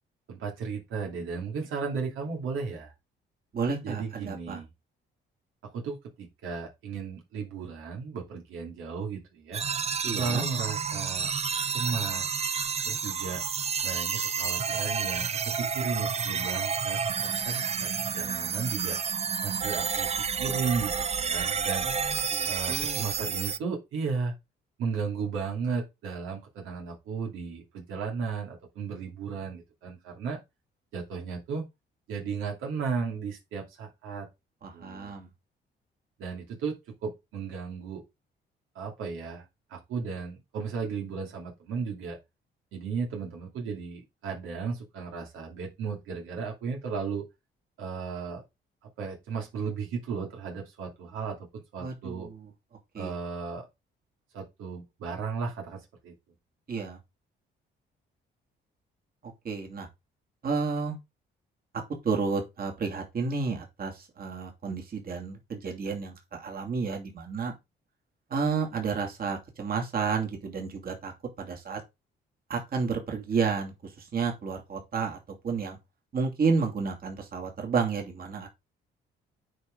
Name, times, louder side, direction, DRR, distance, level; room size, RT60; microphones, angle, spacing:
voice 1, 0.3-2.9 3.8-4.7 5.7-9.6 10.1-11.3 11.7-12.3 12.8-13.4 13.8-17.9 18.1-19.0 19.4-21.8 22.5-24.3 24.8-30.4 30.9-31.7 32.1-34.3 34.7-35.1 36.2-38.0 38.7-39.4 39.7-42.2 42.7-47.3 47.8-48.4 49.0-51.5 51.7-52.3 52.9-53.6 54.3-56.1, right 5 dB, 90° right, 2.6 m, -35 dB
voice 2, 3.5-4.6 10.0-10.4 21.8-23.0 34.6-35.3 51.8-52.4 52.9-53.1 56.7-57.0 59.4-59.9 60.4-61.0 62.0-67.5 68.3-71.1 71.4-71.8 72.5-73.7 74.1-75.2 75.4-75.8 76.1-78.5, right 5 dB, 50° right, 2.6 m, -31 dB
sound 1, 9.5-23.6, right 6 dB, 30° right, 0.5 m, -30 dB
9.4 x 4.5 x 3.8 m
cardioid pair, 90°, 20 cm